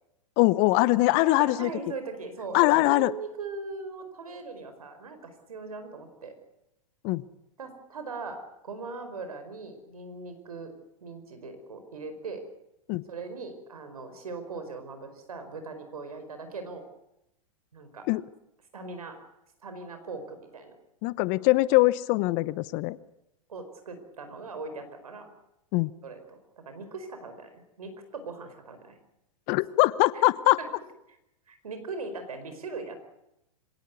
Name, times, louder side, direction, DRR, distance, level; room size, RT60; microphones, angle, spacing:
voice 1, 0.4-1.7 2.5-3.1 7.0-7.2 12.9-13.0 18.1-18.2 21.0-23.0 25.7-25.9 29.5-30.6, left 20 dB, 45° left, 18 dB, 0.9 m, -22 dB
voice 2, 1.2-6.4 7.6-10.8 11.0-12.5 13.1-16.9 17.7-18.1 18.7-19.3 19.6-20.7 23.5-25.3 26.0-28.9 30.1-30.2 30.6-30.7 31.5-33.0, right 4 dB, 80° right, 8 dB, 4.9 m, -40 dB
25.0 x 18.0 x 8.4 m, 0.87 s
hypercardioid pair, 110°, 19 cm